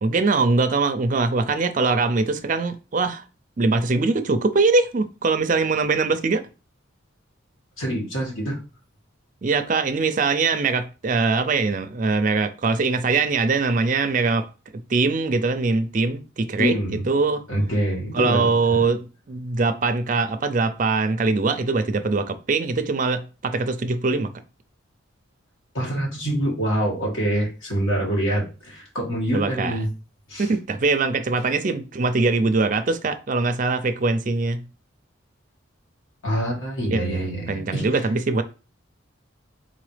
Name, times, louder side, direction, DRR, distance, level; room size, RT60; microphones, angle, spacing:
voice 1, 0.0-3.2 3.6-6.5 9.4-14.5 14.7-16.8 17.1-17.4 18.1-24.3 29.3-29.8 30.4-34.6 36.9-38.4, right 3 dB, 40° right, 0.4 m, -22 dB
voice 2, 7.8-8.6 16.6-17.0 17.5-18.8 25.7-29.9 30.3-30.5 36.2-38.0, equal, 80° left, 1.9 m, -25 dB
4.0 x 3.9 x 3.2 m
head